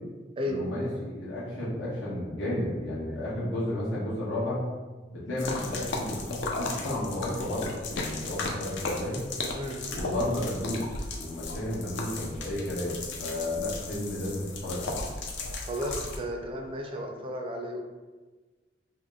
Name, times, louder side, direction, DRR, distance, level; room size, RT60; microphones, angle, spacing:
voice 1, 0.5-4.6 5.1-9.2 9.9-10.9 11.2-15.0, left 1 dB, 85° left, -7 dB, 1.2 m, -32 dB
sound 1, 5.4-16.2, left 3 dB, 65° left, 0.5 m, -35 dB
voice 2, 15.7-17.8, equal, 30° right, 2 dB, 0.4 m, -33 dB
3.5 x 2.1 x 3.5 m, 1.3 s
head